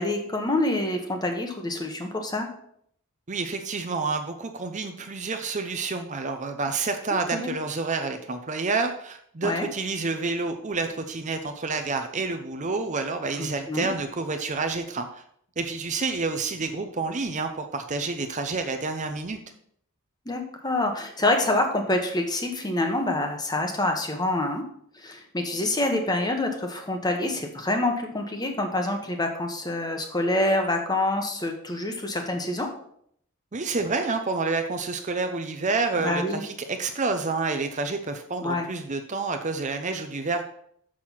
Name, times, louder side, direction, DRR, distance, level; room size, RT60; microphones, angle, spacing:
voice 1, 0.0-2.5 7.3-7.5 9.4-9.7 13.4-13.9 20.3-24.6 25.0-32.7 36.0-36.4 38.4-38.7, left 2 dB, 20° left, 4 dB, 1.1 m, -26 dB
voice 2, 3.3-15.2 15.6-19.4 33.5-40.4, right 3 dB, 35° right, 6 dB, 0.6 m, -29 dB
6.6 x 6.2 x 5.7 m, 0.67 s
head